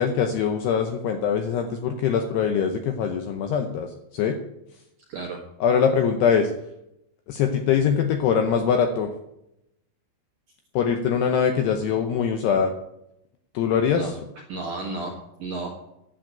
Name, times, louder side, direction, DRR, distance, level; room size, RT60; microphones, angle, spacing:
voice 1, 0.0-4.4 5.6-6.5 7.3-9.1 10.8-12.7 13.5-14.1, left 7 dB, 80° left, 5 dB, 2.4 m, -23 dB
voice 2, 5.1-5.4 13.9-14.1 14.5-15.7, right 3 dB, 65° right, -1 dB, 2.1 m, -32 dB
10.5 x 7.6 x 8.9 m, 0.83 s
omnidirectional pair, 5.7 m